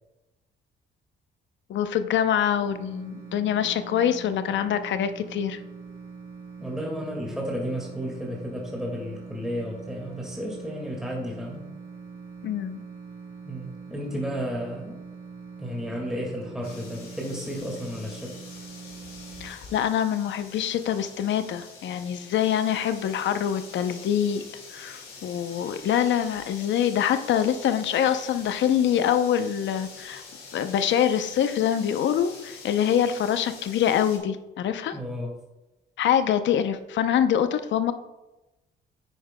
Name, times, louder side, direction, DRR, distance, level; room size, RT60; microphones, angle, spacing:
voice 1, 1.7-5.6 12.4-12.8 19.4-24.4 24.7-30.2 30.5-35.0 36.0-37.9, left 9 dB, 70° left, 10 dB, 0.6 m, -25 dB
sound 1, 2.6-19.5, right 5 dB, 45° right, 2.5 m, -43 dB
voice 2, 6.6-11.6 13.4-15.0 15.6-18.3 34.9-35.3, equal, 5° right, -2 dB, 1.9 m, -33 dB
sound 2, 16.6-34.2, left 4 dB, 85° left, 2.9 m, -45 dB
9.4 x 8.8 x 2.2 m, 1.0 s
cardioid pair, 90°, 20 cm